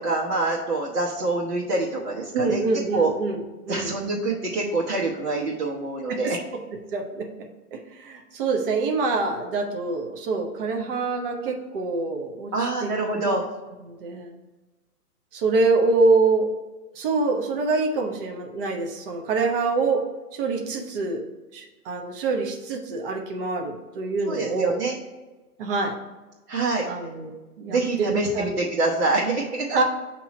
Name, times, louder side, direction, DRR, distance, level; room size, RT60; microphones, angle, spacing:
voice 1, 0.0-2.6 2.9-3.1 3.7-6.4 12.5-13.4 24.3-25.0 26.5-26.9 27.7-29.8, right 3 dB, 70° right, -4 dB, 1.4 m, -25 dB
voice 2, 2.3-3.9 6.1-6.4 6.9-7.3 7.7-13.4 13.8-14.4 15.3-16.5 16.9-20.0 20.3-21.2 21.5-24.8 25.6-25.9 26.9-28.6 29.7-29.8, right 3 dB, 35° right, 3 dB, 0.8 m, -25 dB
7.0 x 3.0 x 5.0 m, 1.2 s
hypercardioid pair, 140°, 46 cm